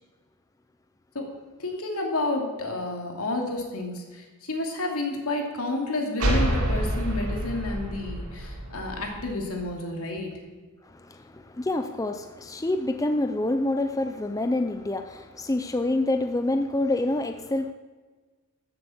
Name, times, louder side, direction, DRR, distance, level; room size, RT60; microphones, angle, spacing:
voice 1, 1.6-10.6, left 2 dB, 75° left, 1 dB, 2.7 m, -30 dB
sound 1, 6.2-9.7, right 1 dB, 75° right, 3.1 m, -28 dB
voice 2, 10.9-17.7, left 2 dB, 15° left, 7 dB, 0.5 m, -27 dB
14.0 x 7.7 x 7.2 m, 1.4 s
head